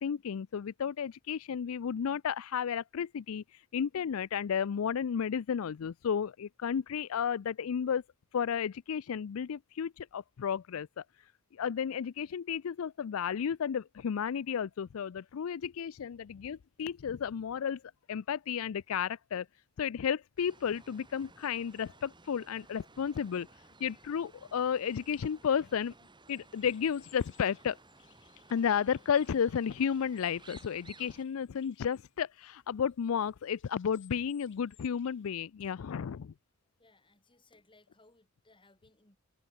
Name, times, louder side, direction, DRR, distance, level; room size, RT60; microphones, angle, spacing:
voice 1, 0.0-8.0 8.3-11.0 11.5-17.8 18.1-19.5 19.8-23.5 23.8-25.9 26.3-27.8 28.5-36.3, left 7 dB, 75° left, 0.4 m, -33 dB
sound 1, 20.4-31.2, right 3 dB, 20° right, 6.2 m, -58 dB
sound 2, 26.5-35.3, left 12 dB, 60° left, 7.6 m, -64 dB
voice 2, 36.8-39.2, left 2 dB, 25° left, 5.2 m, -64 dB
head